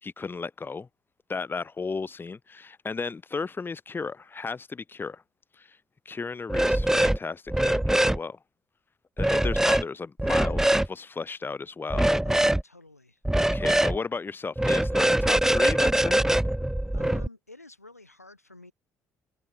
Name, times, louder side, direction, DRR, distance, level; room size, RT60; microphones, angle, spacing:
voice 1, 0.0-0.9 1.3-5.2 5.5-5.8 6.0-8.4 9.2-12.2 13.3-16.2, left 4 dB, 25° left, 2.7 m, -34 dB
sound 1, 6.5-7.2 7.5-8.2 9.2-9.8 10.2-10.9 11.9-12.6 13.2-14.0 14.6-17.3, right 1 dB, 5° right, 1.4 m, -23 dB
voice 2, 12.2-13.2 16.9-18.7, left 2 dB, 90° left, 6.2 m, -49 dB
figure-of-eight pair, 50°, 8 cm